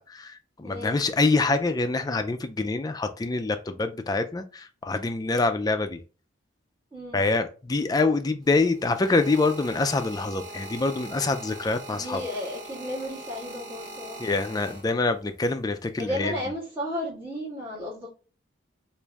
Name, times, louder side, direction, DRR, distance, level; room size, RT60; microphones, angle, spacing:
voice 1, 0.0-6.0 7.1-12.2 14.2-16.3, left 3 dB, 20° left, 0.3 m, -25 dB
voice 2, 0.6-1.0 6.9-7.3 11.9-14.3 16.0-18.1, left 1 dB, 15° right, 1.6 m, -33 dB
sound 1, 8.4-15.3 16.1-16.4, right 1 dB, 80° right, 1.0 m, -42 dB
3.2 x 2.5 x 3.4 m
head